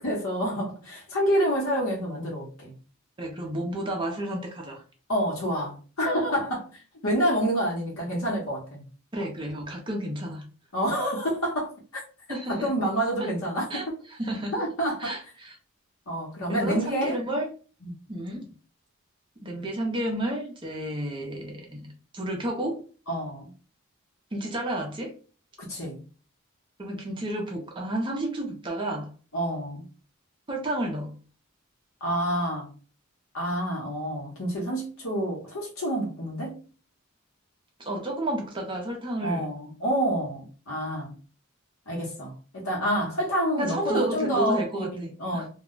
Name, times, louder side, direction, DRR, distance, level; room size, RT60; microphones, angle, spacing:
voice 1, 0.0-2.7 5.1-6.7 7.0-8.8 10.7-12.0 12.5-13.8 14.5-15.1 16.1-17.2 17.8-17.9 23.1-23.5 25.6-26.0 29.3-29.8 32.0-32.7 33.3-36.6 39.2-41.2 41.9-44.6 44.9-45.5, equal, 80° left, 1.0 m, -28 dB
voice 2, 3.2-4.8 9.1-10.5 12.3-12.7 13.2-13.3 13.7-14.6 15.0-15.6 16.5-17.5 18.1-18.5 19.4-22.8 24.3-25.2 26.8-29.1 30.5-31.2 37.8-39.5 43.6-45.5, right 1 dB, 25° right, 0.5 m, -31 dB
2.3 x 2.1 x 3.6 m
head